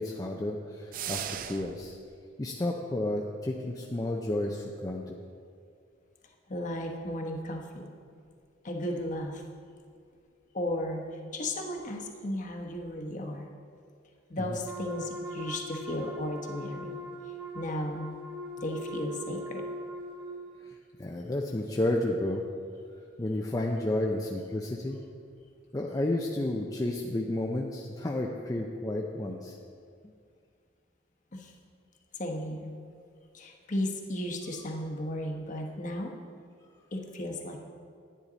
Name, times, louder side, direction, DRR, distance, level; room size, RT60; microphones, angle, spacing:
voice 1, 0.0-2.0 2.4-5.1 14.4-14.5 20.6-22.4 23.2-25.0 25.7-29.6, left 1 dB, 20° left, 0 dB, 0.5 m, -31 dB
sound 1, 0.9-1.9, right 9 dB, 50° right, 0.4 m, -37 dB
voice 2, 6.5-7.9 8.6-9.4 10.5-11.0 11.3-13.5 14.3-17.0 17.5-18.1 18.6-19.6 31.3-31.5 32.2-32.7 33.3-36.1 36.9-37.6, left 1 dB, 45° left, 2 dB, 1.1 m, -34 dB
Wind instrument woodwind instrument, 14.6-20.4, equal, 10° right, 1.5 m, -40 dB
10.0 x 9.6 x 4.0 m, 2.2 s
head